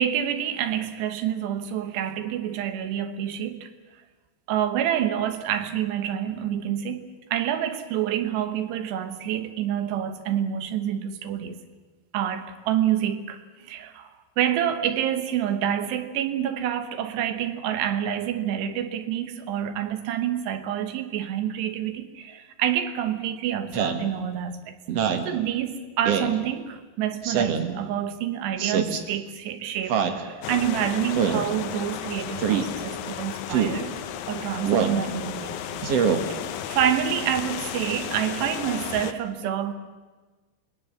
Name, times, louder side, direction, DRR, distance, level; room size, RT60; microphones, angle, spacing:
voice 1, 0.0-3.7 4.5-11.6 12.1-14.1 14.4-24.8 25.3-33.9 34.3-35.9 36.3-36.4 36.7-39.7, right 10 dB, 70° right, 3.2 m, -27 dB
Speech synthesizer, 23.7-24.0 24.9-25.3 26.0-26.3 27.2-27.7 28.6-29.0 29.9-30.2 31.1-31.5 32.4-32.7 33.5-33.8 34.7-35.0 35.8-36.2, right 7 dB, 90° right, 1.3 m, -23 dB
sound 1, 30.4-39.1, left 10 dB, 90° left, 1.9 m, -34 dB
26.0 x 20.5 x 7.4 m
omnidirectional pair, 5.4 m